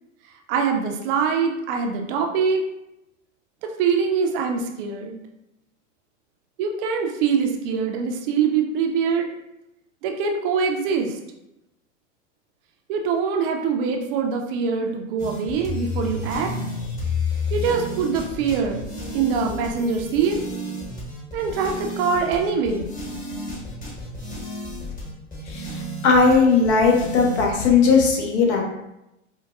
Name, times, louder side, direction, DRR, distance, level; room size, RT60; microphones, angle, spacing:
voice 1, 0.5-2.6 3.8-5.2 6.6-9.3 10.0-11.2 12.9-16.5 17.5-18.8 19.1-20.4 21.3-22.9, right 6 dB, 45° right, 3 dB, 0.5 m, -23 dB
sound 1, 15.2-27.8, left 2 dB, 20° left, 1.4 m, -31 dB
voice 2, 25.5-28.6, left 4 dB, 60° left, 1 dB, 1.0 m, -18 dB
4.6 x 2.2 x 2.3 m, 0.88 s
hypercardioid pair, 105°, 38 cm